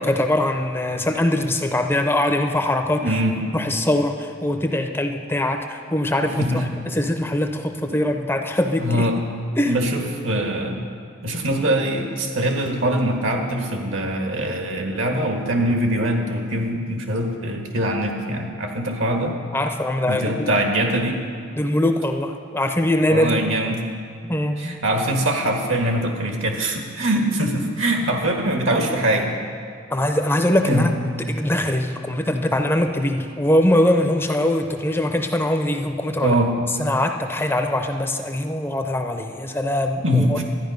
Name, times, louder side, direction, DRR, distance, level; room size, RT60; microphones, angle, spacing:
voice 1, 0.0-3.0 3.5-6.6 6.9-9.1 9.6-9.8 19.5-20.5 21.6-23.4 24.3-24.6 29.9-30.9 31.3-36.3 36.8-40.4, left 1 dB, 10° left, 5 dB, 0.5 m, -22 dB
voice 2, 3.0-3.4 6.2-6.6 7.9-8.0 8.8-9.2 9.7-10.8 11.2-19.4 20.1-21.2 23.1-23.8 24.6-29.4 30.6-30.9 36.2-36.5 40.0-40.4, right 1 dB, 75° right, 2 dB, 1.5 m, -23 dB
12.5 x 9.9 x 5.3 m, 2.2 s
head